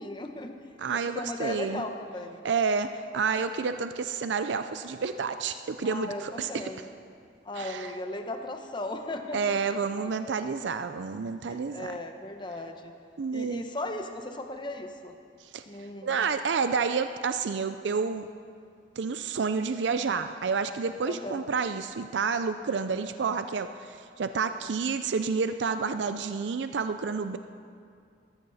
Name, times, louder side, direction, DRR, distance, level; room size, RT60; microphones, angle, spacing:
voice 1, 0.0-0.6 0.9-2.4 5.8-6.9 7.4-9.8 10.3-10.4 11.5-12.9 13.3-15.1 15.7-16.2 21.1-21.4, left 2 dB, 25° left, 5 dB, 1.0 m, -37 dB
voice 2, 0.8-1.8 2.4-2.9 3.1-6.6 7.6-7.9 9.3-11.9 13.2-13.6 15.4-15.6 16.0-18.3 19.0-27.4, right 5 dB, 85° right, 10 dB, 0.5 m, -29 dB
19.0 x 14.0 x 4.1 m, 2.3 s
head